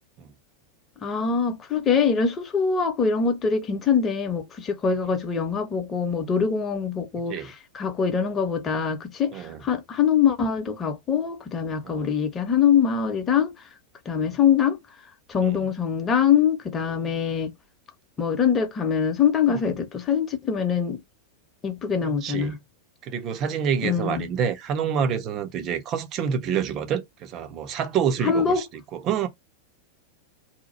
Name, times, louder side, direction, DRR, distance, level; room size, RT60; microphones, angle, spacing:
voice 1, 1.0-13.5 14.1-14.8 15.3-17.5 18.2-21.0 21.6-22.6 23.8-24.3 28.2-28.6, left 7 dB, 25° left, 0.9 m, -23 dB
voice 2, 22.0-22.6 23.0-29.3, right 7 dB, 35° right, 0.7 m, -28 dB
2.9 x 2.2 x 4.2 m
figure-of-eight pair, 90°, 0 cm